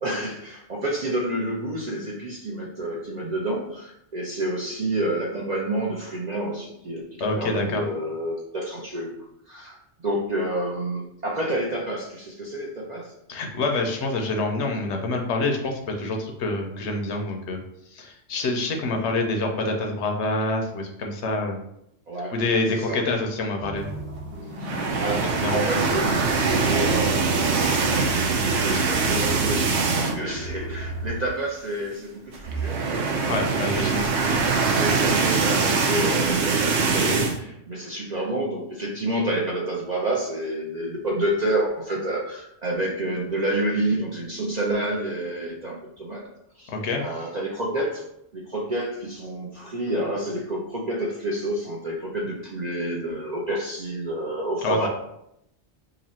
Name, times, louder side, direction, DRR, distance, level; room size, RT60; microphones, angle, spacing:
voice 1, 0.0-9.2 9.5-9.8 10.0-13.1 22.1-22.4 22.7-23.0 24.6-32.8 33.3-34.4 34.8-46.2 46.6-48.0 48.3-54.9, right 1 dB, 50° right, -3 dB, 0.5 m, -29 dB
voice 2, 7.2-7.8 13.3-17.6 17.9-21.6 22.3-23.9 25.2-25.6 33.2-34.0 46.7-47.0 54.6-54.9, left 2 dB, 70° left, 2 dB, 0.9 m, -26 dB
sound 1, 23.6-31.2, right 1 dB, 30° right, 1.0 m, -33 dB
sound 2, 24.6-30.4 30.7-30.9 31.2-31.3 32.3-37.4, right 4 dB, 70° right, 0.8 m, -23 dB
2.9 x 2.7 x 4.1 m, 0.77 s
omnidirectional pair, 1.3 m